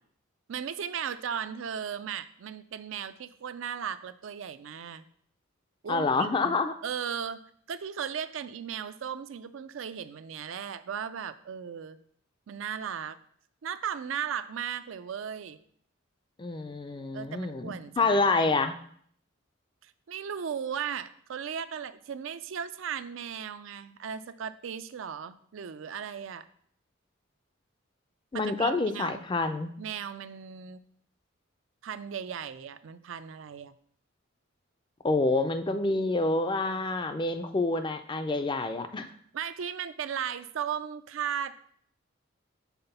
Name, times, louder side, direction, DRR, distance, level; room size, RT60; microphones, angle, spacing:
voice 1, 0.5-5.0 5.8-6.6 6.8-7.4 7.7-12.0 12.5-13.2 13.6-15.6 17.1-18.2 19.8-26.4 28.3-29.2 29.8-30.8 31.8-33.7 39.3-41.5, right 8 dB, 70° right, 13 dB, 0.4 m, -36 dB
voice 2, 5.9-6.7 16.4-18.8 28.3-29.7 35.0-39.1, left 3 dB, 20° left, 8 dB, 0.4 m, -27 dB
5.8 x 4.3 x 5.4 m, 0.62 s
head